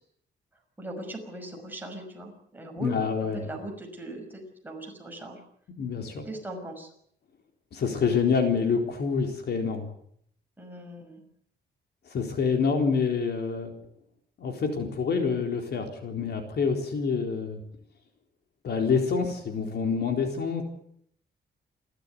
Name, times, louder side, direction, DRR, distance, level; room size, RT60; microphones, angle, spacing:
voice 1, 0.8-3.0 3.4-5.4 6.2-6.9 10.6-11.2, right 1 dB, 10° right, 1 dB, 5.9 m, -39 dB
voice 2, 2.8-3.5 5.8-6.2 7.7-9.9 12.1-13.7 14.4-17.6 18.6-20.6, left 5 dB, 60° left, 4 dB, 4.1 m, -27 dB
28.5 x 13.5 x 9.6 m, 0.69 s
wide cardioid pair, 160°, 19 cm